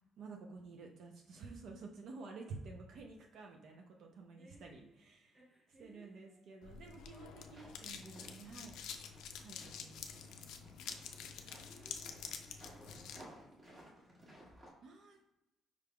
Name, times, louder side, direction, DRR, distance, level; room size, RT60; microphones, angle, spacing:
voice 1, 0.2-5.4 5.8-8.8 9.4-10.7 14.8-15.3, right 4 dB, 70° right, 2 dB, 0.5 m, -51 dB
voice 2, 4.4-4.9 5.3-7.0 10.7-10.9 11.3-13.9, right 1 dB, 15° right, -3 dB, 1.2 m, -64 dB
sound 1, 6.6-13.2, left 7 dB, 85° left, 0.4 m, -48 dB
sound 2, 7.4-14.7, right 1 dB, 35° right, 1.3 m, -59 dB
4.9 x 3.4 x 2.2 m, 0.90 s
cardioid pair, 110°, 0 cm